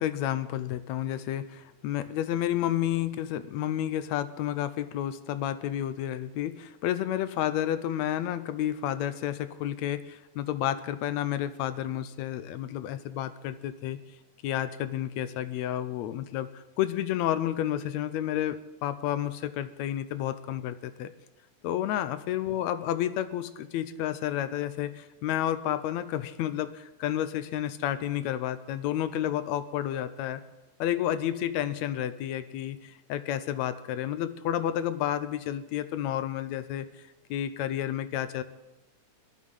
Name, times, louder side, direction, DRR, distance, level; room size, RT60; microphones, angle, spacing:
voice 1, 0.0-14.0 14.4-21.1 21.6-30.4 30.8-36.9 37.3-38.4, left 11 dB, 75° left, 12 dB, 1.8 m, -31 dB
17.5 x 12.0 x 5.5 m, 1.0 s
omnidirectional pair, 3.6 m